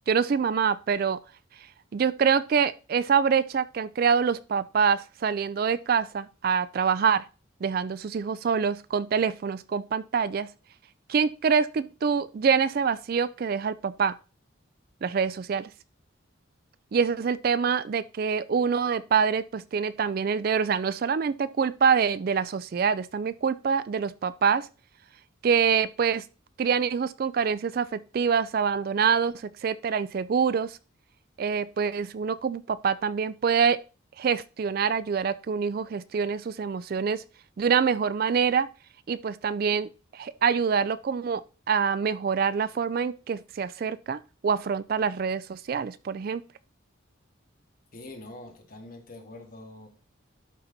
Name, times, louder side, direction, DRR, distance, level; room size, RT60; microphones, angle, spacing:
voice 1, 0.1-1.2 1.9-7.2 7.6-10.5 11.1-14.1 15.0-15.7 16.9-24.7 25.4-26.2 26.6-30.8 31.4-33.8 34.2-37.2 37.6-38.7 39.1-46.4, right 6 dB, 45° right, 0.3 m, -25 dB
voice 2, 47.9-49.9, left 2 dB, 45° left, 1.7 m, -44 dB
12.0 x 4.2 x 4.0 m
head